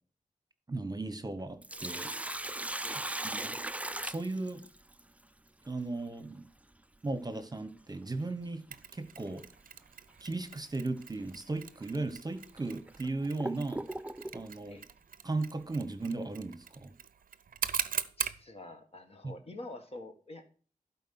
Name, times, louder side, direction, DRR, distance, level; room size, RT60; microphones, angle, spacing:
voice 1, 0.7-2.1 3.2-3.6 4.0-4.6 5.7-6.5 7.0-8.6 8.9-9.4 10.2-13.8 14.3-14.8 15.2-16.9 19.2-19.3, right 2 dB, 25° right, 10 dB, 1.0 m, -36 dB
Sink (filling or washing), 1.4-5.0 7.4-7.5 9.4-9.6 10.1-10.2 11.0-11.1 11.8-11.9 12.6-14.5, right 1 dB, 10° right, 0.4 m, -38 dB
Mechanisms, 8.7-18.4, right 7 dB, 75° right, 0.5 m, -41 dB
voice 2, 18.2-20.5, left 2 dB, 45° left, 5 dB, 1.7 m, -47 dB
11.5 x 4.3 x 5.9 m, 0.42 s
cardioid pair, 50°, 14 cm